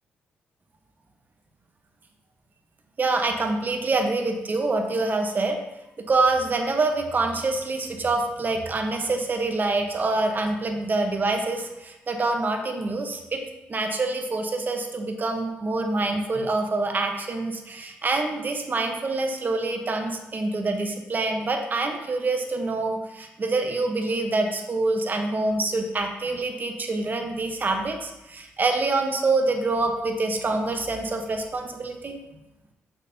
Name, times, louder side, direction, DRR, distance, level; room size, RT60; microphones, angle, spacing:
voice 1, 3.0-5.6 6.0-13.4 13.7-32.2, right 3 dB, 40° right, 4 dB, 1.0 m, -26 dB
6.3 x 5.5 x 2.8 m, 0.96 s
supercardioid pair, 65°, 5 cm